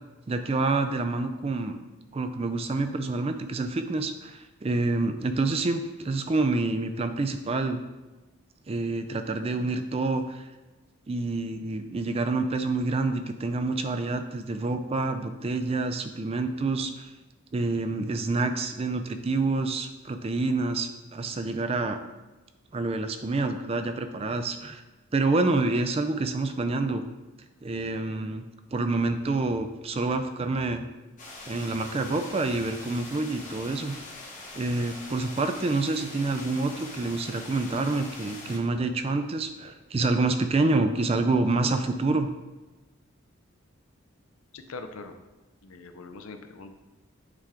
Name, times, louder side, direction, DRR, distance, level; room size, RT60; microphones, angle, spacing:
voice 1, 0.3-1.8 2.1-7.8 8.7-10.5 11.1-17.1 17.5-22.0 22.7-24.8 25.1-27.0 27.6-28.4 28.7-30.8 31.5-34.0 34.5-42.3, right 3 dB, 25° right, 8 dB, 0.3 m, -27 dB
sound 1, 31.2-38.6, left 2 dB, 35° left, 0.9 m, -43 dB
voice 2, 44.5-45.1 45.6-46.8, left 3 dB, 80° left, 7 dB, 0.6 m, -42 dB
8.1 x 3.6 x 3.4 m, 1.1 s
head